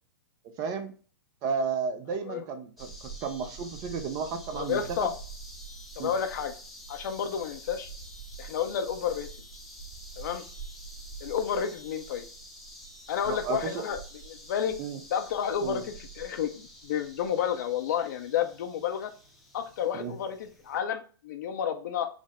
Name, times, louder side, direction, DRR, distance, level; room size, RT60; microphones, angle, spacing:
voice 1, 0.4-0.9 1.4-5.1 6.0-6.1 13.3-13.9 14.8-15.0 15.6-15.8 19.9-20.2, right 5 dB, 30° right, 8 dB, 0.6 m, -33 dB
voice 2, 2.1-2.4 4.6-5.1 6.0-6.5 6.9-7.9 8.4-9.3 10.2-10.4 11.2-12.2 13.1-14.0 14.3-14.7 15.1-19.1 19.5-22.1, left 8 dB, 55° left, 6 dB, 0.5 m, -31 dB
sound 1, 2.8-20.8, right 2 dB, ahead, 0.8 m, -46 dB
4.8 x 2.1 x 3.4 m, 0.39 s
figure-of-eight pair, 105°, 12 cm